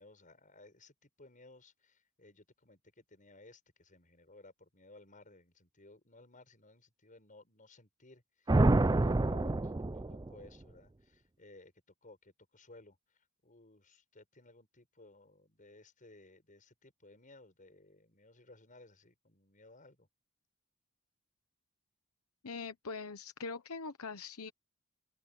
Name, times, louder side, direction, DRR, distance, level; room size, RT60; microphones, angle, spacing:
voice 1, 0.0-9.7 10.1-11.7 12.0-20.1, left 2 dB, 35° left, 6.7 m, -59 dB
sound 1, 8.5-10.5, right 2 dB, 20° right, 0.5 m, -27 dB
voice 2, 22.4-24.5, left 4 dB, 85° left, 1.0 m, -42 dB
open air
head